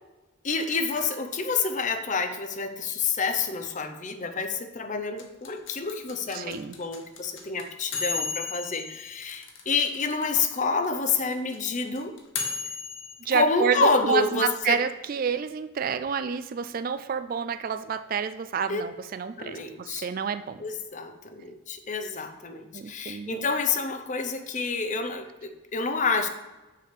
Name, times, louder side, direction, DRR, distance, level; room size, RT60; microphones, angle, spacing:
voice 1, 0.4-12.2 13.3-14.8 18.7-18.8 19.4-20.1 20.6-26.3, left 4 dB, 35° left, 7 dB, 0.7 m, -28 dB
sound 1, 5.2-10.3 10.6-10.7 10.8-13.2, left 4 dB, 65° left, 1.1 m, -34 dB
voice 2, 6.3-6.7 13.3-20.6 22.7-23.4, right 6 dB, 40° right, 12 dB, 0.3 m, -29 dB
6.6 x 5.1 x 6.7 m, 1.1 s
head